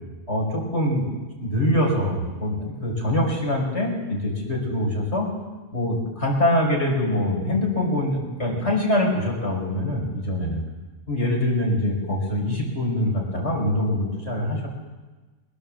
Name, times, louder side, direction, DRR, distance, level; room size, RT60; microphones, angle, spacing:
voice 1, 0.3-1.1 1.4-5.3 5.7-10.6 11.1-14.7, left 1 dB, 70° left, -1 dB, 5.9 m, -24 dB
21.5 x 16.5 x 7.7 m, 1.2 s
omnidirectional pair, 1.2 m